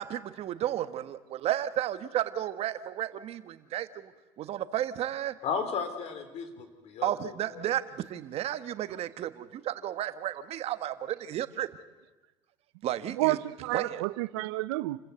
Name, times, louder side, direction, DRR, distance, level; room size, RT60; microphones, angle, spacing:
voice 1, 0.0-4.1 4.4-5.4 7.0-11.7 12.8-13.4 13.7-14.0, right 12 dB, 55° right, 1.3 m, -33 dB
voice 2, 5.4-7.7, left 6 dB, 55° left, 3.5 m, -35 dB
voice 3, 13.1-15.1, right 19 dB, 90° right, 0.6 m, -30 dB
28.5 x 15.0 x 8.0 m
supercardioid pair, 100°, 12 cm